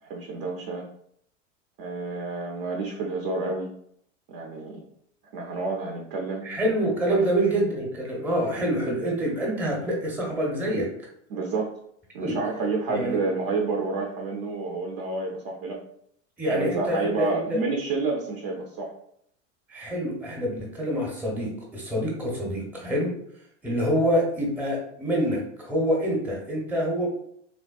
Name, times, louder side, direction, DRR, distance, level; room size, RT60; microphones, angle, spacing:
voice 1, 0.0-0.9 1.8-3.7 4.3-4.8 5.3-6.5 7.1-7.2 11.3-11.7 12.1-15.8 16.5-18.9, right 3 dB, 45° right, 1 dB, 0.5 m, -29 dB
voice 2, 6.4-10.9 12.2-12.4 12.9-13.2 16.4-17.6 19.7-23.1 23.6-27.1, equal, 5° right, -2 dB, 0.7 m, -26 dB
3.4 x 2.2 x 2.3 m, 0.69 s
figure-of-eight pair, 85°, 38 cm